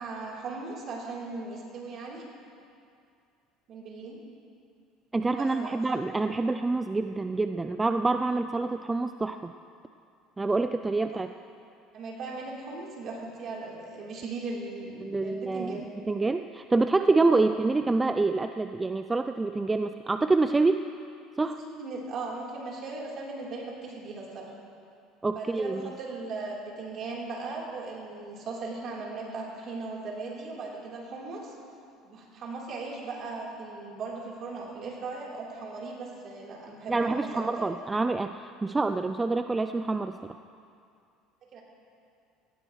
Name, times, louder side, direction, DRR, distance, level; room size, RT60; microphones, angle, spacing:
voice 1, 0.0-2.2 3.7-4.2 5.3-6.0 11.9-15.9 17.3-17.5 21.6-24.5 25.3-31.5 32.0-37.6 40.2-40.3 41.5-41.6, right 3 dB, 50° right, -3 dB, 3.6 m, -38 dB
voice 2, 5.1-9.5 10.4-11.3 15.0-20.8 21.4-21.6 25.2-25.9 36.9-40.1, right 3 dB, 15° right, 9 dB, 0.4 m, -27 dB
18.0 x 15.5 x 3.2 m, 2.4 s
supercardioid pair, 110°, 0 cm